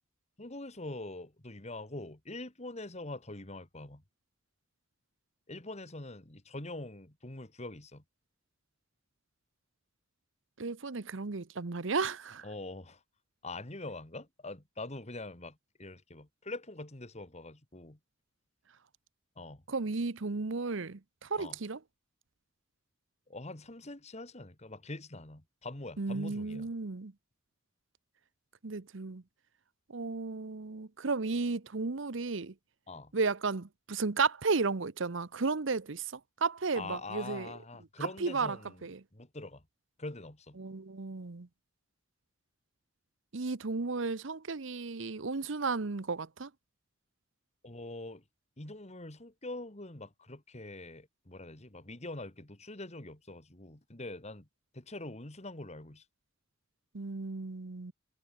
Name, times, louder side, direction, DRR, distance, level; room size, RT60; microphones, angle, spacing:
voice 1, 0.4-4.0 5.5-8.0 12.4-13.0 13.4-18.0 19.4-19.6 21.4-21.6 23.3-26.7 32.9-33.1 36.7-38.8 39.1-39.6 40.0-40.6 47.6-48.2 48.6-54.5 54.7-56.0, left 2 dB, 35° left, 2.3 m, -44 dB
voice 2, 10.6-12.5 19.7-21.8 26.0-27.1 28.6-29.2 29.9-32.5 33.1-37.5 38.2-39.0 40.6-41.5 43.3-46.5 56.9-57.9, right 4 dB, 65° right, 0.9 m, -34 dB
head